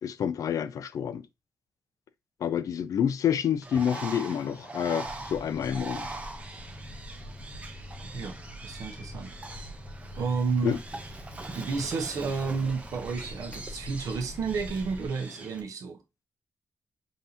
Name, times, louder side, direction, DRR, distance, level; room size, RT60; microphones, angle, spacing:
voice 1, 0.0-1.3 2.4-6.1 10.6-10.8, left 8 dB, 75° left, 0.4 m, -28 dB
Bird, 3.6-15.6, right 3 dB, 20° right, 0.7 m, -42 dB
sound 1, 5.0-15.1, left 1 dB, 20° left, 0.6 m, -44 dB
voice 2, 8.1-9.3 10.2-10.8 11.5-16.0, right 4 dB, 70° right, 0.9 m, -31 dB
5.4 x 2.7 x 2.8 m
wide cardioid pair, 145°, 6 cm